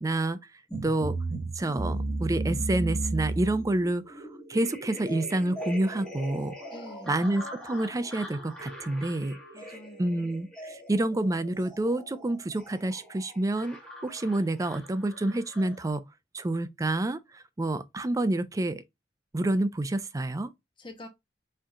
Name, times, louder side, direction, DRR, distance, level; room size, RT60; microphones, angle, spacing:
voice 1, 0.0-0.4 0.8-1.2 1.6-4.2 4.5-6.5 7.1-9.4 10.0-13.8 14.0-16.0 16.3-18.8 19.3-20.5, right 2 dB, 20° right, 0.4 m, -28 dB
sound 1, 0.7-15.9, right 2 dB, 5° left, 1.6 m, -37 dB
voice 2, 6.7-7.3 9.5-10.3 20.8-21.1, left 1 dB, 25° left, 1.1 m, -46 dB
4.4 x 3.6 x 2.5 m
head